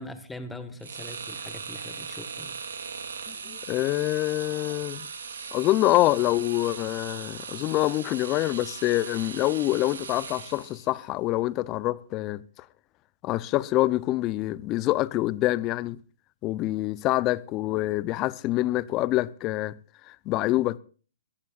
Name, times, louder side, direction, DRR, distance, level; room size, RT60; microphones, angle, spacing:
voice 1, 0.0-2.6, left 1 dB, 5° left, 1.6 m, -41 dB
sound 1, 0.8-10.9, right 6 dB, 75° right, 2.6 m, -39 dB
voice 2, 3.3-5.1 5.5-12.4 13.2-16.0 16.4-19.7 20.1-20.8, left 17 dB, 30° left, 0.7 m, -26 dB
23.0 x 15.0 x 2.5 m
hypercardioid pair, 130°, 0 cm